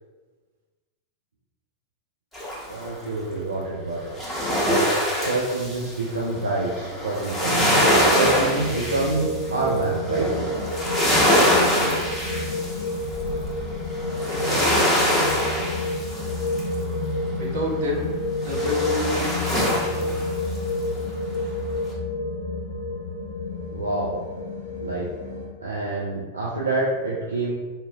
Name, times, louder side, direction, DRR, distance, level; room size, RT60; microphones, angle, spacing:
sound 1, 2.3-3.0 4.1-16.9 18.4-20.6 21.0-21.1, equal, 5° left, 1.0 m, -24 dB
voice 1, 2.7-4.1 4.6-7.7 8.0-10.3 21.0-21.1 23.7-24.2 24.8-25.1 25.6-27.5, right 2 dB, 75° right, -5 dB, 0.4 m, -27 dB
sound 2, 7.4-25.5, left 2 dB, 60° left, 0.5 m, -29 dB
voice 2, 14.3-15.4 17.4-18.1 18.4-20.3, left 1 dB, 60° right, -3 dB, 0.8 m, -30 dB
2.8 x 2.4 x 2.9 m, 1.3 s
figure-of-eight pair, 90°, 0 cm